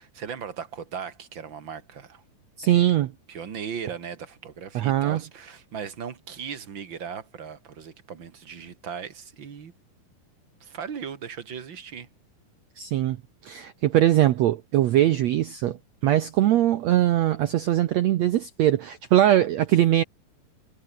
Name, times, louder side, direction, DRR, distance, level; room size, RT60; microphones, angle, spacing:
voice 1, 0.0-2.2 2.6-2.9 3.3-9.7 10.6-12.1, right 7 dB, 40° right, 1.9 m, -37 dB
voice 2, 2.6-3.1 4.7-5.2 12.8-13.2 13.4-15.8 16.0-20.0, right 13 dB, 90° right, 1.5 m, -21 dB
omnidirectional pair, 4.4 m